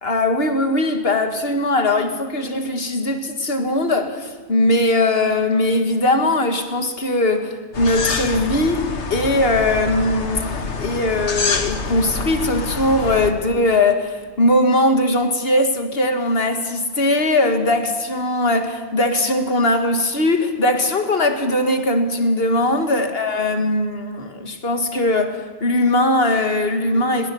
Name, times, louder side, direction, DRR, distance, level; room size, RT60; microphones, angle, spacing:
voice 1, 0.0-27.3, left 1 dB, 60° left, 6 dB, 2.1 m, -20 dB
sound 1, 7.7-13.3, left 4 dB, 80° left, 1.7 m, -26 dB
21.5 x 19.0 x 7.1 m, 1.6 s
omnidirectional pair, 1.2 m